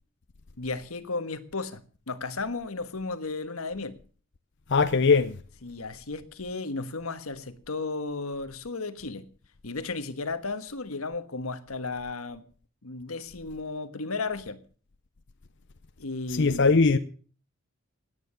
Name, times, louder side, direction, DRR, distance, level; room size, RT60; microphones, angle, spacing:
voice 1, 0.6-4.0 5.6-9.2 9.6-12.4 12.8-14.6 16.0-16.8, left 3 dB, 85° left, 1.4 m, -34 dB
voice 2, 4.7-5.4 16.3-17.0, left 4 dB, 55° left, 0.7 m, -20 dB
17.5 x 9.5 x 6.9 m
head